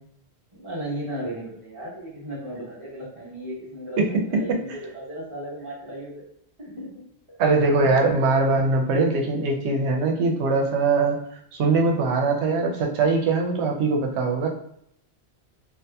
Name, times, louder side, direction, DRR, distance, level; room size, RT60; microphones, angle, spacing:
voice 1, 0.5-6.2 6.6-6.9 7.3-7.4, right 1 dB, 30° right, -8 dB, 0.9 m, -35 dB
voice 2, 4.0-4.4 7.4-11.2 11.5-14.5, right 3 dB, 90° right, 2 dB, 0.8 m, -21 dB
2.7 x 2.4 x 2.2 m, 0.70 s
omnidirectional pair, 1.1 m